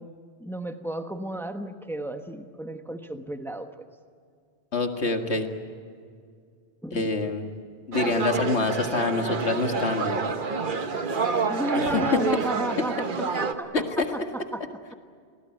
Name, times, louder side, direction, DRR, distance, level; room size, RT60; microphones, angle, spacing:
voice 1, 0.0-3.9 6.8-7.2 11.5-14.6, right 1 dB, ahead, 7 dB, 1.2 m, -33 dB
voice 2, 4.7-5.5 6.9-7.5 7.9-10.2 11.7-12.2 12.8-12.9 13.7-14.1, left 3 dB, 90° left, 5 dB, 2.2 m, -26 dB
sound 1, 7.9-13.5, right 5 dB, 50° right, 1.4 m, -28 dB
28.5 x 19.0 x 9.2 m, 2.2 s
omnidirectional pair, 1.1 m